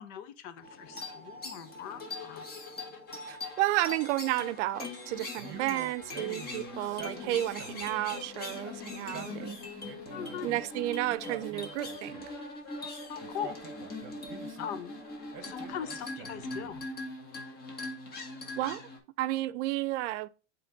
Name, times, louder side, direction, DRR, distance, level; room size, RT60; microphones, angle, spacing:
voice 1, 0.0-2.5 6.7-6.9 10.1-10.5 13.1-13.6 13.8-14.0 14.6-15.0 15.4-16.8, left 9 dB, 65° left, 0.9 m, -41 dB
sound 1, 0.6-19.0, left 2 dB, 25° left, 1.4 m, -42 dB
sound 2, 3.1-6.7 7.5-9.8 10.6-10.7 11.7-13.7, left 4 dB, 45° left, 1.6 m, -53 dB
voice 2, 3.3-9.6 10.4-12.3 18.6-18.8 19.2-20.3, right 16 dB, 75° right, 0.6 m, -32 dB
Male speech man speaking, 5.4-7.9 8.9-10.6 11.1-12.4 13.2-14.7 15.3-16.8, right 7 dB, 35° right, 1.0 m, -47 dB
7.9 x 3.2 x 3.9 m
supercardioid pair, 145°, 36 cm